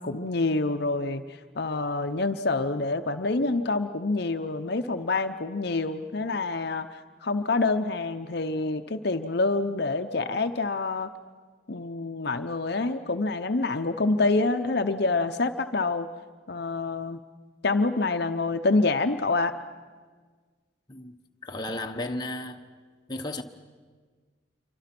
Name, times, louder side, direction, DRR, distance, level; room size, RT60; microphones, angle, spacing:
voice 1, 0.0-11.1 11.7-16.1 16.5-17.2 17.6-19.5, left 3 dB, 55° left, 0.7 m, -27 dB
voice 2, 21.4-22.6 23.1-23.4, left 1 dB, 20° left, 1.1 m, -34 dB
27.5 x 24.5 x 6.0 m
head